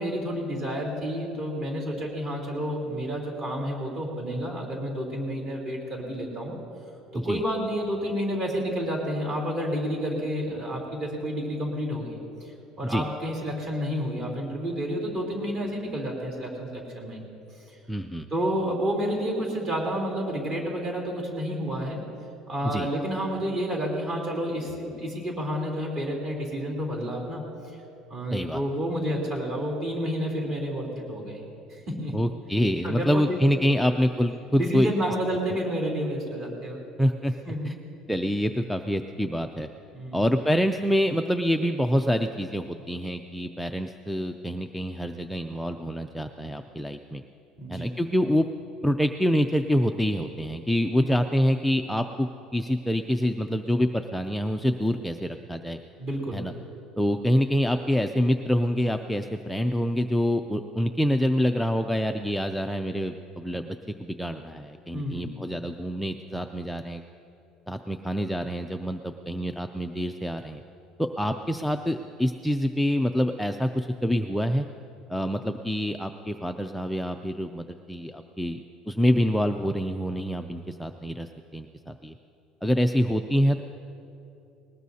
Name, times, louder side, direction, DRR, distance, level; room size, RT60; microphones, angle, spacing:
voice 1, 0.0-6.5 7.1-12.5 12.8-17.2 18.3-22.0 22.5-27.4 28.1-31.4 31.7-32.1 32.8-33.4 34.5-36.8 37.4-37.7 39.9-40.2 47.6-47.9 51.0-51.2 56.0-56.4 64.9-65.3, equal, 35° right, -1 dB, 3.5 m, -30 dB
voice 2, 17.9-18.3 22.6-22.9 28.3-28.6 32.1-34.9 37.0-37.3 37.6-37.8 38.1-39.7 40.1-47.2 47.7-48.5 48.8-55.8 56.3-56.5 57.0-67.0 67.7-70.6 71.0-74.7 75.1-82.2 82.6-83.6, equal, ahead, 5 dB, 0.3 m, -26 dB
20.0 x 19.5 x 2.8 m, 2.7 s
cardioid pair, 160°, 0 cm